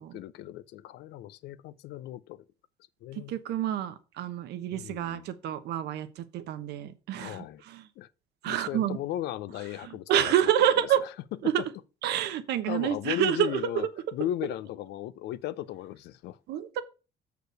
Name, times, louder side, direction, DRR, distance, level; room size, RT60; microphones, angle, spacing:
voice 1, 0.0-2.4 3.0-3.3 4.7-5.3 7.2-7.6 8.0-8.1 8.5-10.5 12.7-13.9 14.1-16.4, left 13 dB, 80° left, 0.6 m, -36 dB
voice 2, 3.1-7.9 8.4-9.0 9.8-11.0 11.4-11.6 12.0-13.9 16.5-16.8, right 10 dB, 75° right, 1.0 m, -28 dB
6.7 x 4.9 x 6.4 m
cardioid pair, 110°, 17 cm